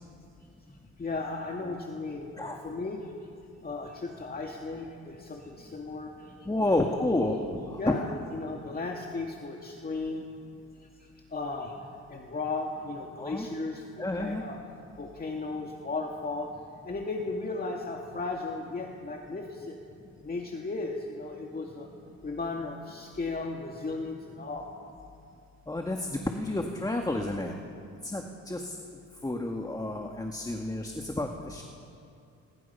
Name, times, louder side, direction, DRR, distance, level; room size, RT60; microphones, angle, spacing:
voice 1, 1.0-3.1 3.6-7.0 7.8-10.3 10.8-11.7 12.1-14.6 15.0-16.5 16.8-19.8 20.2-21.9 22.2-24.7, left 3 dB, 30° left, 0 dB, 2.3 m, -36 dB
voice 2, 6.5-7.4 7.9-8.0 13.2-13.5 14.0-14.4 25.7-27.5 28.0-28.7 29.2-31.6, left 1 dB, 10° left, 2 dB, 2.0 m, -30 dB
30.0 x 21.5 x 5.8 m, 2.6 s
cardioid pair, 90°, 30 cm